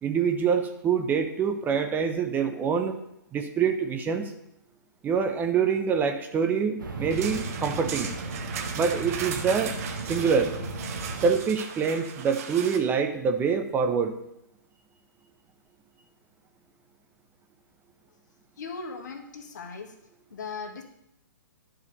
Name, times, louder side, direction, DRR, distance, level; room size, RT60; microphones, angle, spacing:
voice 1, 0.0-2.9 3.3-4.3 5.0-8.1 8.7-9.8 10.0-10.5 11.2-14.2, right 6 dB, 15° right, 7 dB, 0.8 m, -25 dB
sound 1, 6.8-11.3, right 2 dB, 75° right, 1.8 m, -35 dB
sound 2, 7.1-12.8, right 7 dB, 45° right, 1.3 m, -37 dB
voice 2, 18.6-19.9 20.3-20.8, left 4 dB, 60° left, 4 dB, 1.9 m, -38 dB
11.0 x 5.0 x 6.6 m, 0.81 s
figure-of-eight pair, 125°, 11 cm